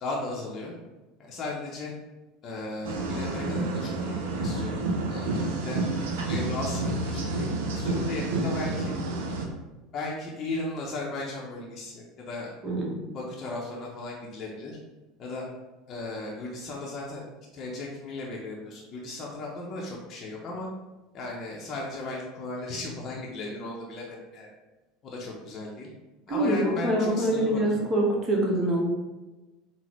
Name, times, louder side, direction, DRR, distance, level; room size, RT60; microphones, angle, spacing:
voice 1, 0.0-0.7 1.2-1.9 2.4-5.8 6.2-7.5 7.7-8.9 9.9-12.5 13.1-14.8 15.2-15.5 15.9-17.2 17.5-20.7 21.1-24.5 25.0-25.9 26.3-27.8, left 2 dB, 40° left, -3 dB, 0.6 m, -36 dB
sound 1, 2.8-9.5, right 2 dB, 75° right, 0.4 m, -29 dB
voice 2, 12.6-12.9 26.3-28.8, right 1 dB, 30° right, -3 dB, 1.0 m, -25 dB
3.7 x 2.1 x 3.0 m, 1.1 s
hypercardioid pair, 75°, 0 cm